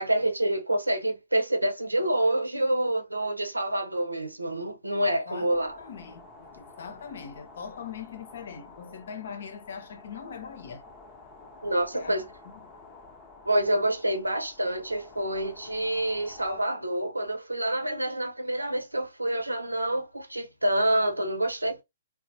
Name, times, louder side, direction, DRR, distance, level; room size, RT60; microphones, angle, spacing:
voice 1, 0.0-5.8 11.6-12.3 13.5-21.8, right 1 dB, 90° right, 0.7 m, -27 dB
sound 1, 5.5-16.6, left 3 dB, 15° left, 0.9 m, -50 dB
voice 2, 5.8-10.8 11.9-12.3 12.5-12.6, left 7 dB, 60° left, 0.7 m, -41 dB
4.0 x 2.0 x 2.7 m
figure-of-eight pair, 120°, 0 cm